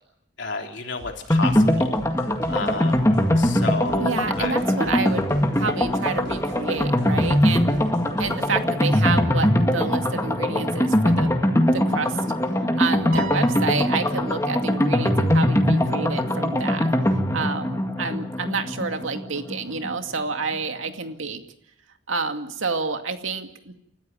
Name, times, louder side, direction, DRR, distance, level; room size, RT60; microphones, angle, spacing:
voice 1, 0.4-2.0 2.5-4.5, left 3 dB, 65° left, 3 dB, 3.3 m, -31 dB
sound 1, 1.0-8.6, equal, 60° right, 7.9 m, -45 dB
sound 2, 1.3-19.9 20.2-20.3 20.5-20.6, left 1 dB, 15° left, 2.0 m, -22 dB
voice 2, 4.0-5.2 5.6-7.7 8.2-11.3 11.7-12.2 12.8-16.9 17.3-21.4 22.1-23.7, right 4 dB, 80° right, 6 dB, 2.3 m, -29 dB
Piano, 13.1-15.6, right 4 dB, 45° right, 5.0 m, -38 dB
30.0 x 14.0 x 9.2 m, 0.77 s
head